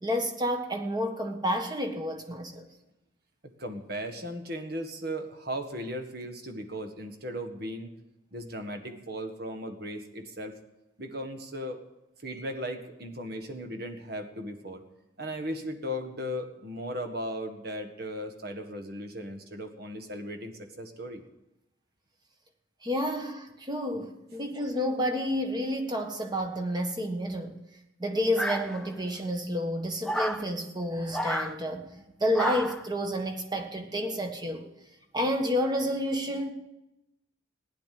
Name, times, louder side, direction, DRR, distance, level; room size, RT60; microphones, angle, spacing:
voice 1, 0.0-2.7 22.8-27.6 28.0-31.9 32.2-34.7 35.1-36.5, equal, 20° right, 4 dB, 1.5 m, -30 dB
voice 2, 3.6-7.9 8.3-10.6 11.0-11.8 12.2-14.8 15.2-21.2, equal, 50° right, 6 dB, 1.7 m, -37 dB
sound 1, 28.3-29.1 30.0-30.4 31.1-31.5 32.3-32.8, equal, 5° left, 0.6 m, -31 dB
16.0 x 10.5 x 7.7 m, 0.93 s
head